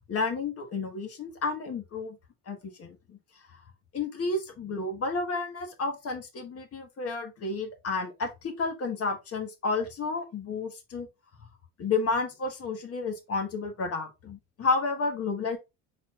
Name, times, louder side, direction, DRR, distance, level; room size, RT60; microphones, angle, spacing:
voice 1, 0.1-2.2 2.5-3.2 3.5-3.6 3.9-11.1 11.8-15.6, left 3 dB, 35° left, 1.5 m, -31 dB
4.6 x 4.1 x 2.4 m
supercardioid pair, 100°, 41 cm